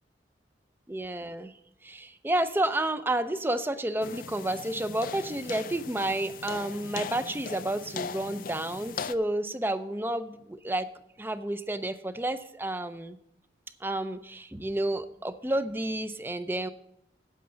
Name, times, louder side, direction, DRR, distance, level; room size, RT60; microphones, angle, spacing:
voice 1, 0.9-1.5 1.8-10.9 11.2-13.2 13.8-16.7, right 1 dB, 10° right, 12 dB, 0.5 m, -30 dB
sound 1, 4.0-9.1, left 6 dB, 50° left, 0.4 m, -39 dB
9.4 x 8.7 x 5.6 m, 0.80 s
head